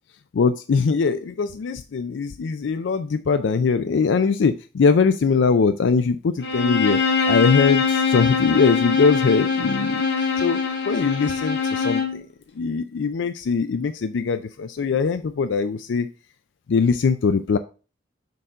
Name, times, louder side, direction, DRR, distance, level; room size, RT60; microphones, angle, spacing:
voice 1, 0.3-7.0 7.3-12.2 12.6-16.1 16.7-17.6, left 5 dB, 85° left, 10 dB, 0.4 m, -21 dB
Bowed string instrument, 6.4-12.2, left 5 dB, 65° left, 1.3 m, -22 dB
6.7 x 3.8 x 5.4 m, 0.34 s
head